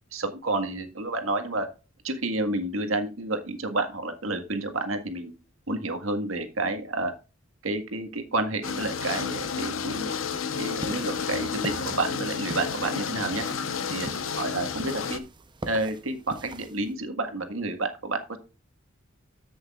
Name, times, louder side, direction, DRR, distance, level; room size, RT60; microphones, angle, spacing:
voice 1, 0.1-1.7 2.0-5.3 5.7-7.1 7.6-10.1 10.6-13.4 13.9-14.1 14.4-15.2 15.6-18.4, right 2 dB, 85° right, 6 dB, 1.7 m, -30 dB
sound 1, 8.6-15.2, left 6 dB, 80° left, 1.0 m, -31 dB
sound 2, 10.5-16.9, right 2 dB, 25° right, 0.7 m, -42 dB
14.0 x 6.3 x 2.4 m, 0.31 s
head